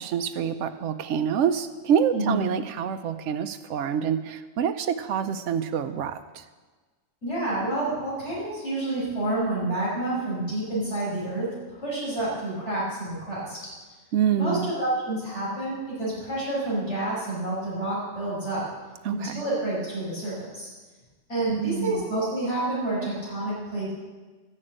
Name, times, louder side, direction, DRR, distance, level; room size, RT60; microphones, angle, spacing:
voice 1, 0.0-6.4 14.1-14.7 19.0-19.4 21.5-22.1, right 8 dB, 80° right, 8 dB, 0.9 m, -26 dB
voice 2, 7.2-13.6 14.4-18.6 19.1-20.7 21.3-23.9, right 2 dB, 70° left, -8 dB, 5.8 m, -29 dB
12.5 x 6.5 x 8.8 m, 1.3 s
omnidirectional pair, 1.2 m